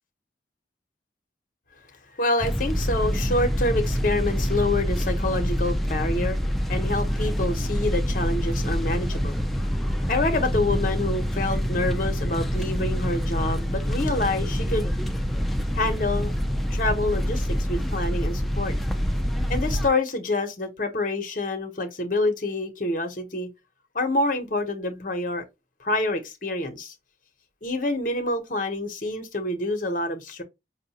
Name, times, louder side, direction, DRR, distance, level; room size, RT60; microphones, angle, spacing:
voice 1, 2.2-6.4 6.7-9.4 10.1-14.9 15.7-16.3 16.7-18.7 19.5-23.5 23.9-25.4 25.8-26.9 27.6-30.4, left 2 dB, 45° left, 0.9 m, -27 dB
sound 1, 2.4-19.9, equal, ahead, 0.4 m, -26 dB
5.4 x 2.4 x 2.8 m
head